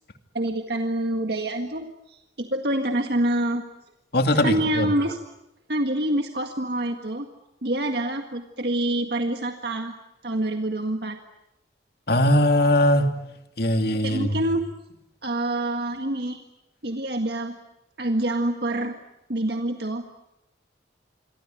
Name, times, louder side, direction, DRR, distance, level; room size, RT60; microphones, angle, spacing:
voice 1, 0.3-3.6 4.4-5.2 5.7-7.3 7.6-10.0 10.2-11.2 14.0-14.6 15.2-16.4 16.8-17.6 18.0-19.0 19.3-20.1, right 1 dB, 55° right, 5 dB, 1.8 m, -26 dB
voice 2, 4.1-4.9 12.1-13.1 13.6-14.3, left 1 dB, 55° left, 6 dB, 2.6 m, -20 dB
27.5 x 23.5 x 9.3 m, 0.92 s
head